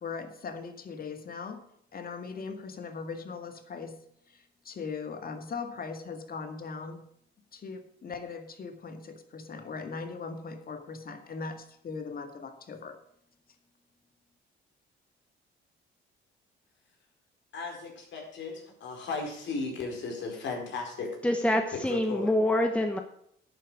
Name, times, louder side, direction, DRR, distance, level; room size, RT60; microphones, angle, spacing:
voice 1, 0.0-1.6 1.9-7.0 7.5-13.0, left 5 dB, 50° left, 7 dB, 2.0 m, -39 dB
voice 2, 17.5-21.1 21.9-22.3, left 4 dB, 70° left, 1 dB, 4.7 m, -36 dB
voice 3, 21.2-23.0, left 1 dB, 5° left, 5 dB, 1.2 m, -26 dB
11.0 x 9.3 x 5.0 m, 0.70 s
cardioid pair, 90°, 20 cm